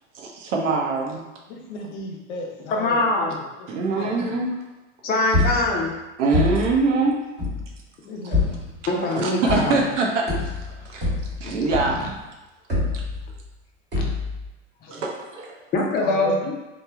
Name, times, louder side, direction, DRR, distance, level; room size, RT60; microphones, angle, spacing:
voice 1, 0.1-1.2 3.7-4.6 6.2-7.2 9.2-10.5 10.8-11.1 11.4-12.1 12.9-13.0 14.9-15.5, right 3 dB, 75° right, -1 dB, 0.7 m, -23 dB
voice 2, 1.5-3.3 4.0-4.3 8.0-8.5 10.9-11.1 16.0-16.4, left 2 dB, 65° left, 0 dB, 0.7 m, -34 dB
voice 3, 2.7-3.5 5.0-6.0 8.9-9.9 11.4-11.5 12.0-12.1 13.9-14.0 14.8-14.9 15.7-16.6, left 2 dB, 25° left, -1 dB, 0.4 m, -23 dB
sound 1, 5.3-5.9 6.3-6.8 7.4-7.8 8.3-8.8 9.5-10.0 10.3-12.2 12.7-13.5 13.9-14.5, left 2 dB, 30° right, 1.3 m, -25 dB
3.0 x 2.2 x 2.3 m, 1.0 s
hypercardioid pair, 100°, 37 cm